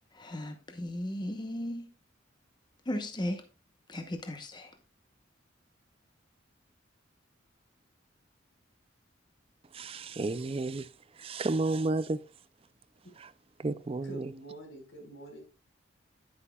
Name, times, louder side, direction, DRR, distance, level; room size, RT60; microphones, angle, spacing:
voice 1, 0.1-1.9 2.8-3.4 3.9-4.8, left 1 dB, 20° left, 0.8 m, -36 dB
voice 2, 9.7-12.2 13.2-13.3 13.6-14.3, right 2 dB, 30° right, 0.4 m, -32 dB
voice 3, 14.0-15.4, right 1 dB, 80° left, 4.3 m, -46 dB
10.0 x 9.7 x 2.3 m
head